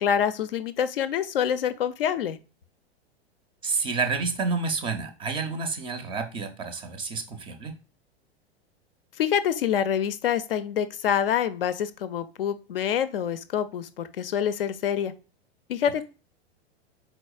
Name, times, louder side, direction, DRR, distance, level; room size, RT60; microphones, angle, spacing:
voice 1, 0.0-2.4 9.2-15.1 15.7-16.0, left 9 dB, 60° left, 13 dB, 0.5 m, -26 dB
voice 2, 3.6-7.8, right 4 dB, 15° right, 9 dB, 0.5 m, -29 dB
4.4 x 4.1 x 2.3 m, 0.33 s
figure-of-eight pair, 95°, 32 cm